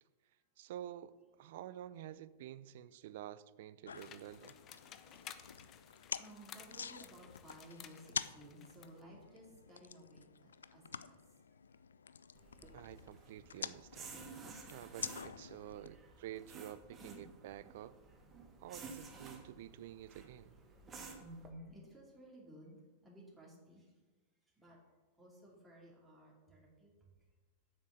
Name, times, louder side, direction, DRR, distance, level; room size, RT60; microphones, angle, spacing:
voice 1, 0.6-4.6 12.7-14.2 14.7-18.0 18.6-20.5, right 12 dB, 60° right, 17 dB, 0.4 m, -50 dB
sound 1, 3.9-15.9, left 6 dB, 75° left, 0.3 m, -48 dB
Hail Stones hitting tin, 4.0-9.0, left 10 dB, 35° left, 0.7 m, -56 dB
voice 2, 4.8-11.3 11.7-11.8 17.0-17.3 18.8-19.1 21.2-23.9 24.5-24.8 25.2-26.9, right 1 dB, 5° right, -5 dB, 2.7 m, -57 dB
sound 2, 12.3-21.5, right 4 dB, 25° right, 1.5 m, -54 dB
7.3 x 6.0 x 6.4 m, 1.3 s
figure-of-eight pair, 95°, 0 cm